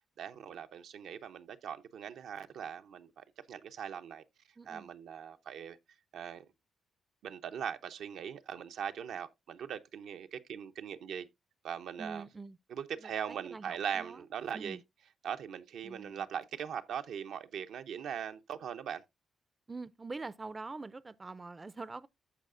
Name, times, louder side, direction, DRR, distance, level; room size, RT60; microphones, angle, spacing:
voice 1, 0.2-4.2 4.7-5.8 6.1-6.5 7.2-11.3 11.6-12.2 12.7-14.8 15.2-19.0, right 8 dB, 80° right, 0.6 m, -40 dB
voice 2, 4.6-4.9 12.0-12.6 13.0-14.2 14.5-14.8 15.8-16.2 19.7-22.1, right 3 dB, 25° right, 0.4 m, -44 dB
14.0 x 4.8 x 2.5 m
cardioid pair, 75°, 0 cm